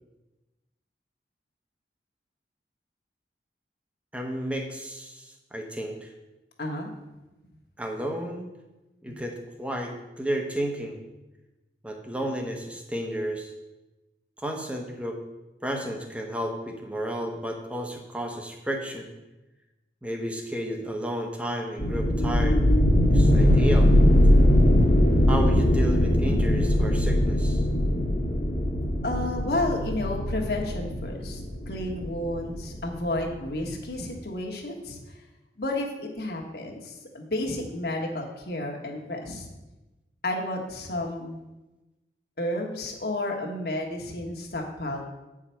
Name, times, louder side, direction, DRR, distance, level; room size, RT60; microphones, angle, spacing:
voice 1, 4.1-6.1 7.8-8.5 9.0-11.0 11.8-13.5 14.4-15.2 15.6-19.1 20.0-22.8 23.1-23.9 25.3-27.6, right 1 dB, 5° right, 2 dB, 0.9 m, -32 dB
voice 2, 6.6-6.9 9.1-9.2 29.0-35.2 35.6-39.5 40.2-41.4 42.4-45.0, left 1 dB, 60° left, 1 dB, 1.4 m, -31 dB
sound 1, 21.8-33.2, left 1 dB, 45° left, 1.2 m, -21 dB
8.4 x 4.9 x 5.7 m, 1.0 s
head